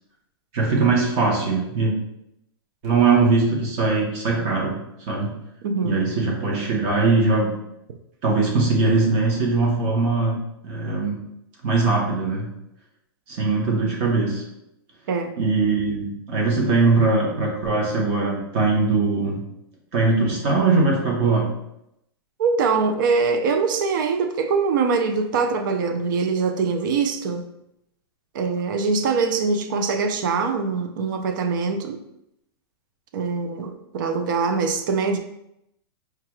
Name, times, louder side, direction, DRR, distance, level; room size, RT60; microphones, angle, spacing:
voice 1, 0.5-1.9 2.8-4.8 5.1-5.3 5.8-7.5 8.2-10.4 10.6-11.2 11.6-12.5 13.3-14.4 15.4-19.4 19.9-21.5, right 3 dB, 30° right, -2 dB, 0.9 m, -21 dB
voice 2, 5.6-6.1 15.1-15.3 22.4-27.5 28.3-32.0 33.1-35.2, right 4 dB, 50° right, 6 dB, 0.4 m, -23 dB
4.6 x 2.3 x 3.0 m, 0.80 s
supercardioid pair, 170°, 14 cm